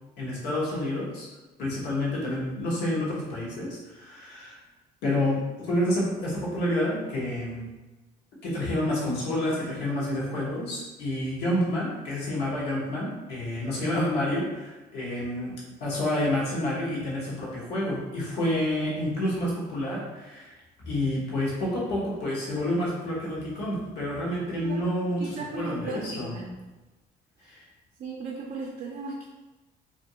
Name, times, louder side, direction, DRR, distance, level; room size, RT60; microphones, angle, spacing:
voice 1, 0.2-1.3 1.6-4.6 5.0-7.7 8.4-15.5 15.8-20.5 20.8-25.2 25.5-26.3 27.5-27.6, left 1 dB, 85° left, -5 dB, 1.1 m, -29 dB
voice 2, 25.2-26.5 27.4-27.6 28.0-29.3, right 4 dB, 55° right, -2 dB, 0.4 m, -36 dB
2.6 x 2.6 x 2.8 m, 1.1 s
cardioid pair, 110°, 17 cm